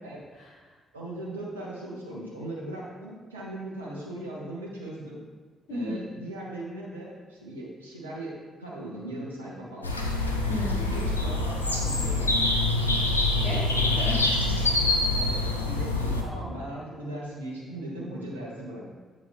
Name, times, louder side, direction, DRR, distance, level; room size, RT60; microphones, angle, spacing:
voice 1, 0.9-5.2 5.7-9.9 10.8-12.6 15.1-15.4 15.7-18.8, right 1 dB, 80° right, -5 dB, 0.9 m, -38 dB
voice 2, 5.7-6.0 10.5-10.9 13.4-15.0, left 1 dB, 55° left, -4 dB, 1.2 m, -35 dB
sound 1, 9.8-16.2, left 2 dB, 85° left, 0.3 m, -25 dB
7.6 x 3.8 x 3.5 m, 1.4 s
figure-of-eight pair, 40°, 0 cm